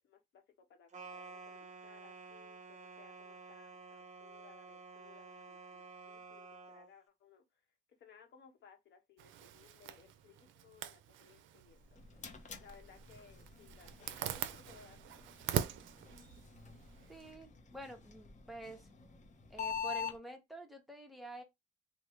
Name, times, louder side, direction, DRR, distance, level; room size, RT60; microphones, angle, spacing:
voice 1, 0.0-7.7 8.0-12.3 12.5-15.0 15.2-15.3, left 6 dB, 65° left, 1.0 m, -62 dB
sound 1, 0.9-6.9, right 4 dB, 35° right, 0.7 m, -51 dB
Zipper (clothing), 9.2-17.3, right 11 dB, 75° right, 0.4 m, -43 dB
sound 2, 11.7-20.2, left 7 dB, 35° left, 0.8 m, -46 dB
voice 2, 17.1-18.9 19.5-21.4, right 1 dB, ahead, 0.8 m, -49 dB
3.0 x 2.2 x 3.1 m
cardioid pair, 90°, 20 cm